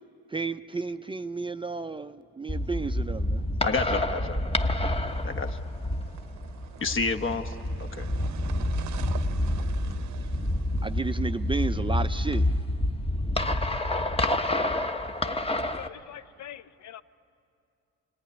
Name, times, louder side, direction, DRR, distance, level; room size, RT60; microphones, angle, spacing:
voice 1, 0.3-3.4 10.8-12.4, right 4 dB, 15° right, 10 dB, 0.5 m, -32 dB
sound 1, 2.5-15.9, left 1 dB, 20° left, 1.1 m, -28 dB
voice 2, 3.6-4.4 5.2-5.6 6.8-7.5 7.8-8.1, left 4 dB, 40° left, 7 dB, 1.3 m, -29 dB
sound 2, 5.1-12.1, right 9 dB, 70° right, 0.9 m, -45 dB
voice 3, 15.2-17.0, left 11 dB, 65° left, 13 dB, 0.8 m, -44 dB
26.0 x 19.0 x 9.9 m, 2.6 s
cardioid pair, 90°, 30 cm